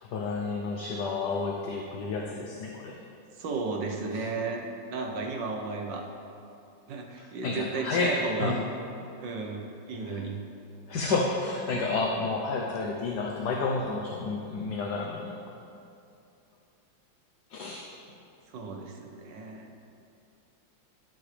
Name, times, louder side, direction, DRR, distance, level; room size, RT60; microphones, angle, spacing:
voice 1, 0.0-3.0 4.1-4.2 7.2-8.6 10.1-10.2 10.9-15.4 17.5-17.9, left 3 dB, 65° left, -1 dB, 1.3 m, -30 dB
voice 2, 3.4-4.6 4.9-6.1 6.9-8.6 9.0-10.4 18.5-19.7, right 3 dB, 70° right, 2 dB, 1.7 m, -34 dB
18.0 x 7.9 x 3.4 m, 2.6 s
omnidirectional pair, 2.1 m